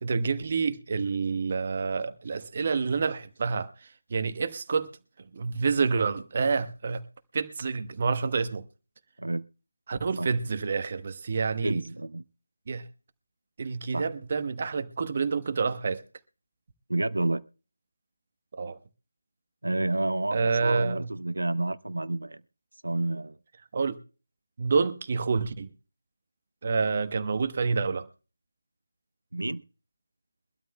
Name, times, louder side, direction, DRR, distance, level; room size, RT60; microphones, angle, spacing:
voice 1, 0.0-4.9 5.3-7.0 7.3-8.6 9.9-11.8 12.7-12.8 13.6-16.0 18.5-18.8 20.3-21.1 23.7-24.0 24.6-25.7 26.6-28.1, right 4 dB, 40° right, 1.0 m, -28 dB
voice 2, 11.6-12.2 13.9-14.1 16.9-17.4 19.6-22.4 22.8-23.4 29.3-29.6, right 2 dB, 75° right, 0.6 m, -29 dB
23.0 x 12.5 x 2.2 m
figure-of-eight pair, 160°, 0 cm